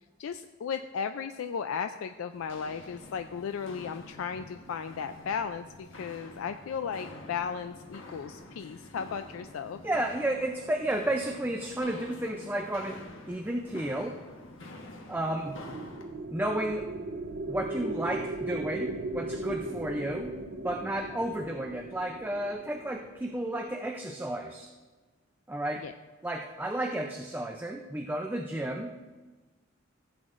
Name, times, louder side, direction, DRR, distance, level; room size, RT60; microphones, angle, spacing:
voice 1, 0.2-9.8 25.8-25.9, left 6 dB, 90° left, 8 dB, 0.4 m, -35 dB
Walk footsteps, 2.3-16.1, left 2 dB, 70° left, 1.1 m, -48 dB
voice 2, 9.8-14.2 15.1-15.5 16.3-16.9 17.5-20.3 20.6-24.7 25.5-25.8 26.2-28.9, right 1 dB, 10° right, 3 dB, 0.4 m, -32 dB
sound 1, 15.1-23.6, right 2 dB, 50° right, 0.7 m, -38 dB
15.0 x 8.0 x 2.5 m, 1.3 s
head